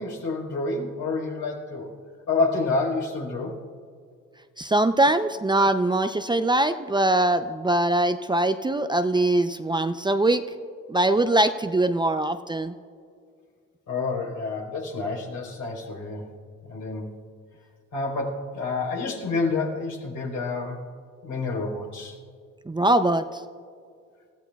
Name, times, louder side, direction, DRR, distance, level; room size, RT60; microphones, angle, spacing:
voice 1, 0.0-1.9 2.3-3.6 13.9-16.3 16.7-17.1 17.9-20.8 21.2-22.1, left 3 dB, 75° left, -1 dB, 4.0 m, -28 dB
voice 2, 4.6-10.4 10.9-12.7 22.7-23.4, right 1 dB, 15° right, 9 dB, 0.5 m, -22 dB
27.5 x 15.0 x 2.3 m, 2.2 s
cardioid pair, 90°, 30 cm